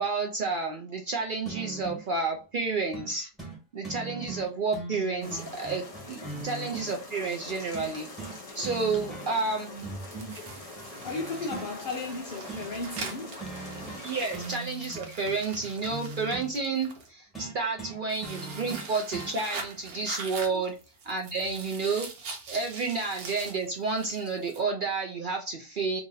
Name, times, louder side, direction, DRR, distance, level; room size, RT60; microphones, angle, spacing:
voice 1, 0.0-3.3 3.7-9.9 14.0-20.7 21.0-22.1 22.5-26.0, right 4 dB, 65° right, 0.5 m, -31 dB
sound 1, 1.5-2.1 2.9-3.1 3.4-3.6 3.8-6.9 7.7-8.4 8.6-9.5 9.8-11.7 12.5-12.7 13.0-13.2 13.4-14.1 14.3-16.5 17.3-19.3 20.4-20.5, right 3 dB, ahead, 1.0 m, -40 dB
sound 2, 5.2-14.6, left 2 dB, 30° left, 0.9 m, -44 dB
sound 3, 9.8-17.1 18.1-24.6, right 4 dB, 85° right, 1.3 m, -43 dB
voice 2, 11.0-13.6, left 3 dB, 65° left, 0.5 m, -36 dB
2.9 x 2.7 x 3.9 m
omnidirectional pair, 1.5 m